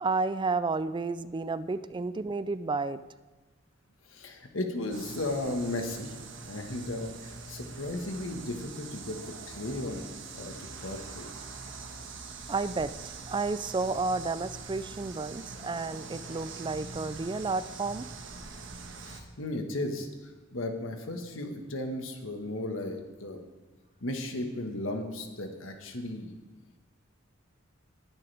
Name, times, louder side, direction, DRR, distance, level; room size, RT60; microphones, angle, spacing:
voice 1, 0.0-3.0 12.5-12.9 13.3-18.1, right 3 dB, 25° right, 14 dB, 0.4 m, -31 dB
voice 2, 4.1-6.1 6.5-10.0 10.3-11.3 19.0-20.1 20.5-23.4 24.0-26.3, left 1 dB, 80° left, 4 dB, 1.6 m, -35 dB
sound 1, 4.9-19.2, right 4 dB, 70° right, 1.4 m, -43 dB
19.5 x 10.5 x 3.5 m, 1.2 s
head